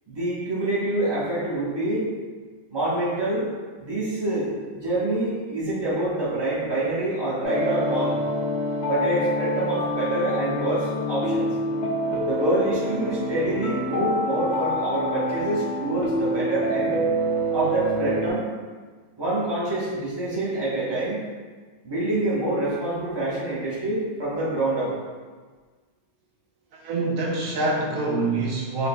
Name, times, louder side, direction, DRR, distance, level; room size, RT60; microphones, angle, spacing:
voice 1, 0.1-2.1 2.7-8.2 8.8-11.5 12.2-17.0 17.5-18.4 19.2-21.2 21.8-24.9, right 2 dB, 20° right, -8 dB, 1.2 m, -26 dB
sound 1, 7.4-18.3, equal, 65° left, 1.1 m, -26 dB
voice 2, 26.7-28.9, right 2 dB, 85° right, -2 dB, 1.2 m, -25 dB
4.9 x 4.2 x 2.3 m, 1.4 s
omnidirectional pair, 1.4 m